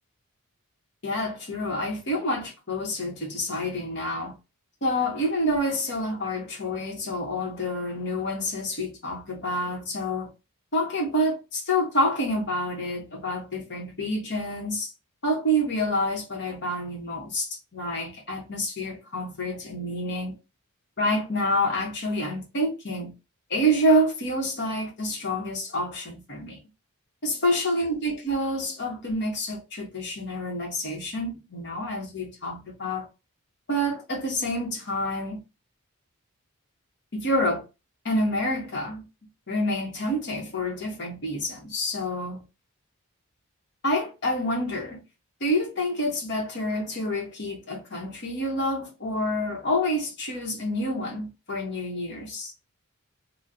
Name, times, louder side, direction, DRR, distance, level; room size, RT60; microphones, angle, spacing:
voice 1, 1.0-4.3 4.8-10.3 10.7-14.9 15.2-20.3 21.0-23.1 23.5-26.6 27.2-33.1 33.7-35.4 37.1-37.6 38.0-39.0 39.5-42.4 43.8-45.0 45.4-52.5, equal, 50° left, 1.2 m, -28 dB
3.8 x 2.4 x 2.7 m
head